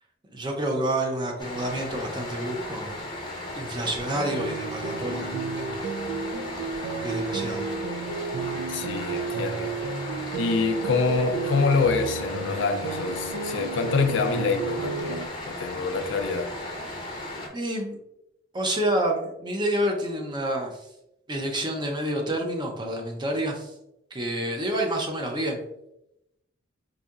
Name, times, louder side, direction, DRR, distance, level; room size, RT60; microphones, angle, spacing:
voice 1, 0.3-3.0 3.6-5.8 6.9-7.7 17.5-18.0 18.5-20.8 21.3-23.7 24.1-25.6, right 1 dB, 25° right, 2 dB, 0.5 m, -28 dB
sound 1, 1.4-17.5, left 1 dB, 25° left, 0.6 m, -36 dB
sound 2, 4.1-15.3, right 4 dB, 80° right, 0.3 m, -33 dB
voice 2, 8.7-9.7 10.3-16.5, left 4 dB, 65° left, 6 dB, 0.4 m, -26 dB
4.0 x 2.7 x 2.3 m, 0.84 s
head